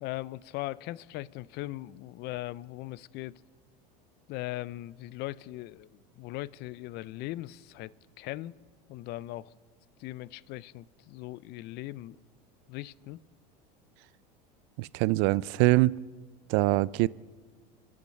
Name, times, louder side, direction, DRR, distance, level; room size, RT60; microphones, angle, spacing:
voice 1, 0.0-3.4 4.3-8.6 8.9-9.5 10.0-12.2 12.7-13.2, left 17 dB, 55° left, 0.5 m, -39 dB
voice 2, 14.8-16.0 16.5-17.1, right 20 dB, 60° right, 0.4 m, -24 dB
24.5 x 8.6 x 6.8 m
supercardioid pair, 100°, 21 cm